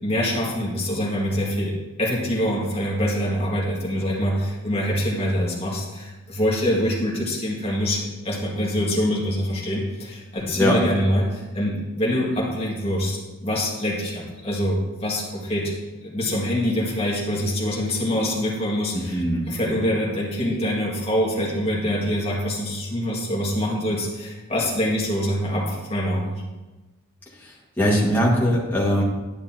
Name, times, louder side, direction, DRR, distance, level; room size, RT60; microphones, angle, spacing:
voice 1, 0.0-1.7 2.0-15.7 16.0-26.3, equal, 25° left, -4 dB, 2.0 m, -25 dB
voice 2, 19.1-19.5 27.8-29.0, equal, 10° left, -6 dB, 1.9 m, -20 dB
10.5 x 9.9 x 2.9 m, 1.1 s
head